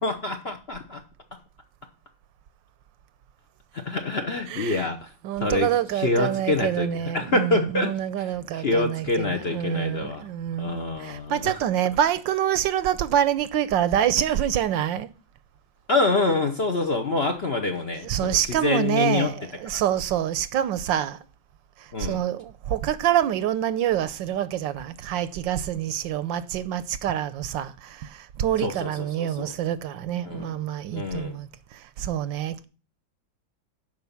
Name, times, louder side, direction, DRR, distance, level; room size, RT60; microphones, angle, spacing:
voice 1, 0.0-1.0 3.9-5.1 5.4-5.7 5.9-10.2 10.6-11.5 15.9-19.3 21.9-22.2 28.6-29.5 30.2-30.6 30.9-31.4, left 3 dB, 45° left, 0.9 m, -26 dB
voice 2, 4.5-4.9 5.2-15.1 18.0-21.2 22.0-32.6, right 10 dB, 75° right, 1.3 m, -26 dB
8.0 x 5.6 x 7.1 m
omnidirectional pair, 2.1 m